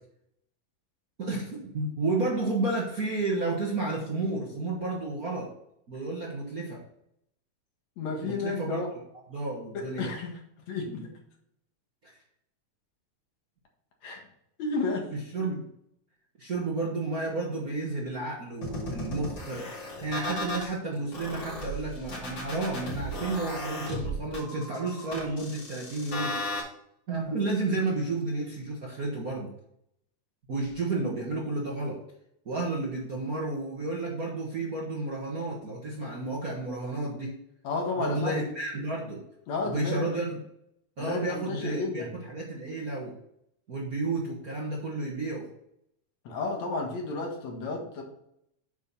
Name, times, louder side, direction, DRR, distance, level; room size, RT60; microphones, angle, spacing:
voice 1, 1.2-5.5 5.9-6.8 8.2-8.8 9.3-10.1 12.0-12.1 15.1-15.7 16.4-26.4 27.1-29.5 30.5-32.0 32.4-37.4 38.0-39.2 39.6-40.4 41.0-43.1 43.7-45.5, right 2 dB, 45° right, -3 dB, 1.3 m, -31 dB
voice 2, 8.0-8.9 9.7-10.4 10.7-11.1 14.0-14.2 14.6-15.1 19.6-19.8 37.6-38.5 39.5-40.1 41.0-42.1 46.2-48.0, left 3 dB, 70° left, 1 dB, 2.8 m, -32 dB
sound 1, 18.6-20.7 21.1-26.6, left 1 dB, 50° left, 3.3 m, -35 dB
8.2 x 6.5 x 4.1 m, 0.75 s
omnidirectional pair, 3.3 m